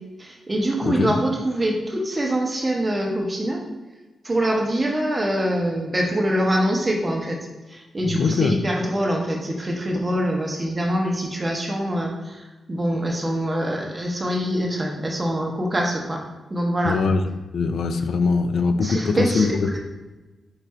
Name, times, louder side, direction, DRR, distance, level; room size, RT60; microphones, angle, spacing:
voice 1, 0.2-3.7 4.2-7.4 7.7-16.2 16.5-17.0 18.8-19.8, right 1 dB, 20° right, 0 dB, 0.8 m, -24 dB
voice 2, 0.8-1.2 8.1-8.6 16.8-19.8, left 4 dB, 70° left, 8 dB, 0.4 m, -22 dB
4.6 x 2.5 x 4.3 m, 1.1 s
wide cardioid pair, 125°, 0 cm